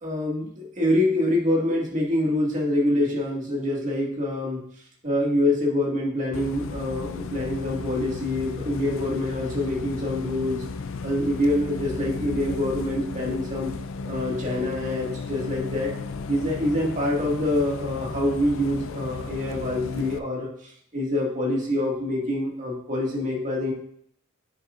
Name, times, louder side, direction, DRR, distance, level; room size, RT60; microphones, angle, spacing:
voice 1, 0.0-4.6 5.0-10.6 11.0-13.7 14.1-15.9 16.3-23.7, left 1 dB, 35° right, -3 dB, 2.1 m, -25 dB
Bus, 6.3-20.2, left 4 dB, 70° left, 0.5 m, -34 dB
9.5 x 6.8 x 2.5 m, 0.65 s
head